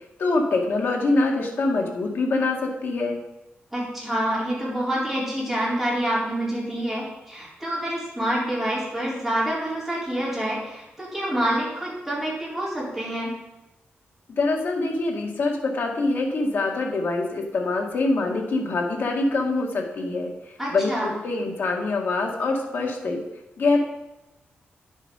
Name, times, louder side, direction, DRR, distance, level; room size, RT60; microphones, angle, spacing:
voice 1, 0.2-3.2 14.3-20.3 20.7-23.2 23.6-23.8, left 3 dB, 60° left, 1 dB, 1.9 m, -24 dB
voice 2, 3.7-13.3 20.6-21.1, right 1 dB, 5° right, -7 dB, 4.2 m, -27 dB
10.5 x 7.3 x 5.6 m, 0.95 s
wide cardioid pair, 140°, 4 cm